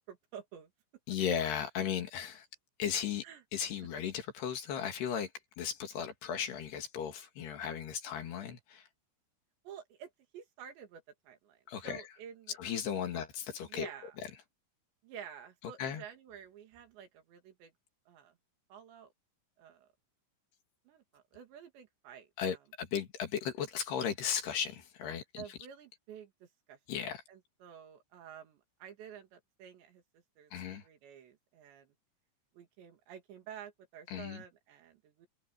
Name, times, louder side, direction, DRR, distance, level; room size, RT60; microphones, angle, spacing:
voice 1, 0.1-0.7 3.2-3.4 9.6-12.6 13.1-13.2 13.7-14.2 15.0-17.7 18.1-18.4 18.7-19.1 19.6-19.9 20.9-22.6 25.4-26.8 27.3-30.5 30.8-31.9 32.5-35.3, right 8 dB, 70° right, 4.5 m, -51 dB
voice 2, 1.1-2.5 2.8-3.2 3.5-5.3 5.6-8.9 11.7-12.0 12.6-13.9 15.8-16.0 22.4-25.4 26.9-27.2 30.5-30.8 34.1-34.4, left 8 dB, 65° left, 4.2 m, -36 dB
open air
omnidirectional pair, 5.4 m